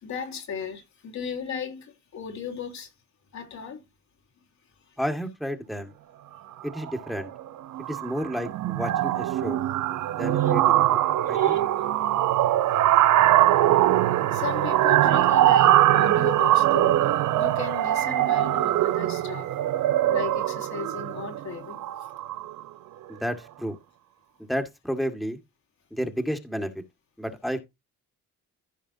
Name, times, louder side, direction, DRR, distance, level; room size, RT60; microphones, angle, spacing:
voice 1, 0.0-2.9 3.3-3.8 10.4-10.5 11.3-11.6 12.7-13.0 14.3-19.5 20.1-21.9, left 6 dB, 65° left, 3.6 m, -36 dB
voice 2, 5.0-5.9 6.6-7.3 7.8-9.6 10.2-11.0 11.3-11.6 23.1-23.8 24.4-25.4 25.9-26.8 27.2-27.6, equal, ahead, 1.9 m, -31 dB
sound 1, 6.6-6.9 7.2-7.5 7.7-22.6, right 13 dB, 80° right, 0.9 m, -22 dB
15.0 x 5.3 x 2.8 m
cardioid pair, 90°, 30 cm